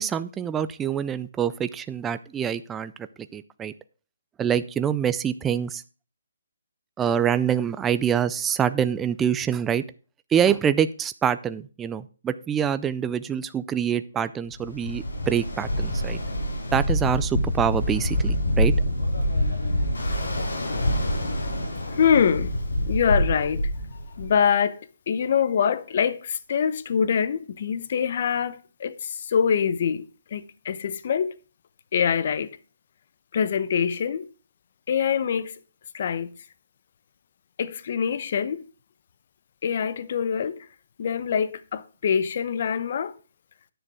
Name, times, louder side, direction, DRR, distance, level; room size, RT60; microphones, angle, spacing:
voice 1, 0.0-2.9 3.3-3.7 4.4-5.8 7.0-9.8 10.3-16.2 16.7-18.7, right 8 dB, 10° right, 0.4 m, -25 dB
Ocean, 14.6-24.5, equal, 85° left, 4.4 m, -26 dB
voice 2, 21.9-22.5 22.9-23.6 24.2-24.8 25.1-30.0 30.3-31.3 31.9-32.5 33.3-34.3 34.9-35.5 35.9-36.3 37.6-38.6 39.6-40.6 41.0-43.1, left 7 dB, 45° left, 0.9 m, -24 dB
10.5 x 6.6 x 4.8 m
hypercardioid pair, 165°, 0 cm